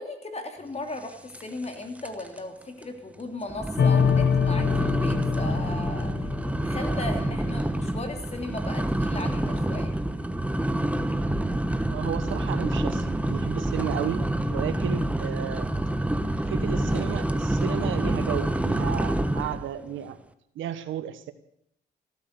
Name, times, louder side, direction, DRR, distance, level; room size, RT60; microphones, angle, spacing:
voice 1, 0.0-6.4 6.6-10.0, left 2 dB, 35° left, 5 dB, 3.2 m, -37 dB
sound 1, 1.3-1.7 2.0-2.4 2.8-2.9 3.5-19.7, right 1 dB, 5° right, 1.2 m, -27 dB
sound 2, 3.8-7.2, left 7 dB, 55° left, 1.0 m, -25 dB
voice 2, 11.9-15.7 16.5-20.2 20.5-21.3, right 10 dB, 85° right, 12 dB, 1.1 m, -33 dB
15.0 x 12.5 x 6.8 m, 0.72 s
cardioid pair, 70°, 19 cm